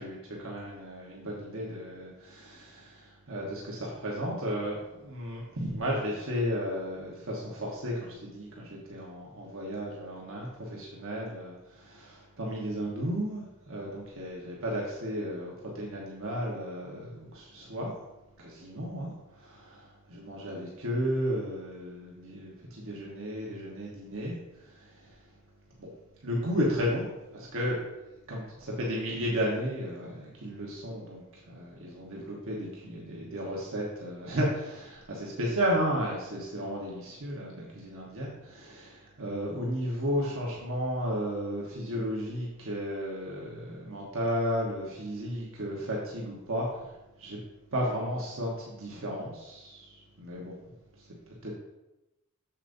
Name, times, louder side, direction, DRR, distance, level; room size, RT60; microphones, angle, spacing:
voice 1, 0.0-17.9 18.4-19.1 19.4-24.4 24.7-24.8 25.8-25.9 26.2-27.0 27.3-27.8 28.3-46.7 47.2-47.4 47.7-50.6 51.4-51.5, equal, 65° right, -3 dB, 1.3 m, -33 dB
7.2 x 7.0 x 2.7 m, 0.96 s
head